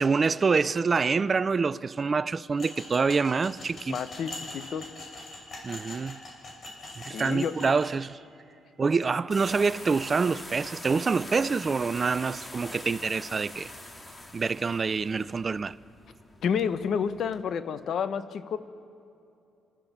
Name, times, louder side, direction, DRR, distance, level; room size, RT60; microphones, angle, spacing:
voice 1, 0.0-4.0 5.6-6.2 7.0-8.2 8.8-13.7 14.3-15.8, right 4 dB, 35° right, 0.5 m, -26 dB
sound 1, 2.6-7.9, left 2 dB, 45° left, 6.0 m, -42 dB
voice 2, 3.9-4.9 7.1-7.5 16.4-18.6, left 7 dB, 65° left, 1.0 m, -30 dB
sound 2, 9.3-17.4, left 1 dB, 25° left, 2.6 m, -44 dB
28.0 x 14.0 x 7.3 m
cardioid pair, 90°, 0 cm